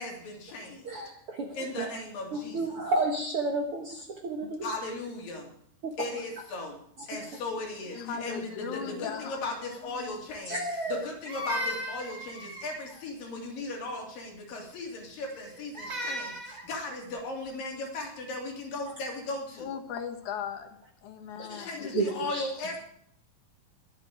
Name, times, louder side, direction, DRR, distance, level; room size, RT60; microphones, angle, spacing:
voice 1, 0.0-1.0 1.5-2.6 4.6-5.5 6.0-6.8 7.1-10.6 10.9-19.7 21.5-22.8, left 2 dB, 90° left, 0 dB, 4.7 m, -37 dB
voice 2, 1.4-1.9 2.3-4.0 4.2-4.6 10.5-10.6 21.4-21.7 21.9-22.5, right 3 dB, 50° right, 1 dB, 1.8 m, -31 dB
voice 3, 7.9-9.4 9.7-9.8 19.6-20.8 21.0-22.7, left 7 dB, 65° left, 6 dB, 2.7 m, -38 dB
Crying sobbing, 10.5-13.0 15.2-16.7, right 1 dB, 20° right, 1.1 m, -36 dB
21.0 x 8.6 x 5.0 m, 0.67 s
omnidirectional pair, 3.9 m